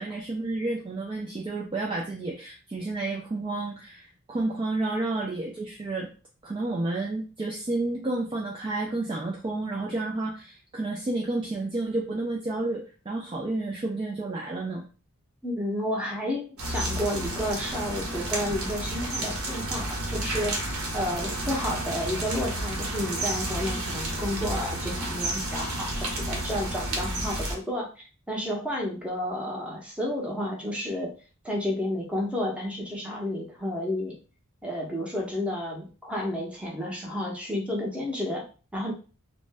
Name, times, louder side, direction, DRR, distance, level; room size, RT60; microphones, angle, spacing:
voice 1, 0.0-6.1 6.4-14.8, right 2 dB, 20° right, -2 dB, 0.3 m, -30 dB
voice 2, 15.4-20.5 20.9-31.1 31.4-34.2 34.6-38.4 38.7-38.9, left 1 dB, 5° right, -2 dB, 0.7 m, -31 dB
sound 1, 16.6-27.6, right 1 dB, 75° right, 0.9 m, -31 dB
2.6 x 2.1 x 3.3 m, 0.35 s
head